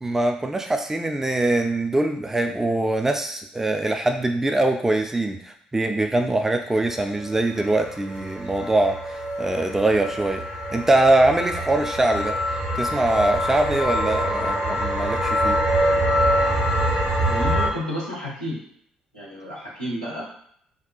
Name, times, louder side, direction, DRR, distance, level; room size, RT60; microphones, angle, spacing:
voice 1, 0.0-10.4 10.7-12.4 12.8-15.6, right 2 dB, 10° right, 5 dB, 0.3 m, -22 dB
sound 1, 7.1-17.7, equal, 50° right, 1.0 m, -25 dB
voice 2, 17.2-18.6 19.1-20.2, left 1 dB, 90° right, -8 dB, 0.8 m, -31 dB
3.6 x 2.3 x 2.3 m, 0.66 s
figure-of-eight pair, 45°, 4 cm